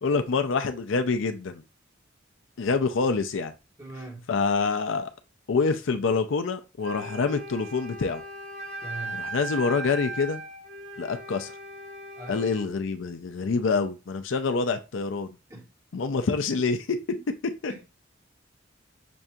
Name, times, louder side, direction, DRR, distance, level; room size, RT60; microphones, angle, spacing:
voice 1, 0.0-1.6 2.6-3.5 4.3-5.1 5.5-8.2 9.1-10.4 11.0-11.5 12.3-15.4 15.9-17.2 17.6-17.7, left 4 dB, 70° left, 0.5 m, -26 dB
voice 2, 3.8-4.2 8.8-9.2 12.2-12.4 15.5-15.6 17.1-17.2 17.7-17.9, right 2 dB, 15° right, 1.4 m, -41 dB
Wind instrument woodwind instrument, 6.8-12.7, right 2 dB, 60° right, 2.4 m, -38 dB
6.1 x 2.7 x 2.3 m
head